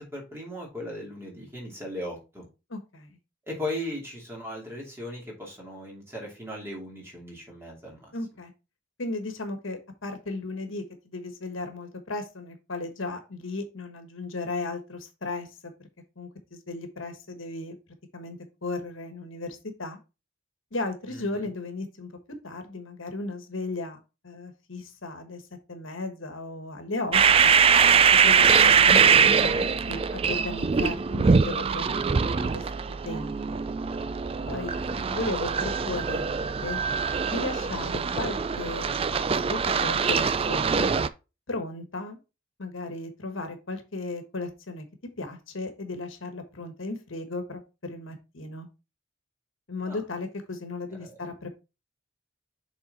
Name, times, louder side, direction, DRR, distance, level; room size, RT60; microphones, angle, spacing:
voice 1, 0.0-2.4 3.5-8.1 21.1-21.5 34.7-35.6 49.8-50.0 51.0-51.2, left 1 dB, 10° right, -2 dB, 2.7 m, -38 dB
voice 2, 2.7-3.2 8.1-8.5 9.0-15.7 16.2-17.8 18.1-20.0 20.7-25.4 25.7-27.5 28.2-32.6 33.0-33.6 34.5-34.7 35.1-36.8 37.3-40.9 41.5-42.2 42.6-44.8 45.2-48.7 49.7-51.5, left 2 dB, 80° left, 7 dB, 1.3 m, -35 dB
sound 1, 27.1-41.1, right 6 dB, 30° right, 0.3 m, -22 dB
6.8 x 3.9 x 4.2 m, 0.28 s
head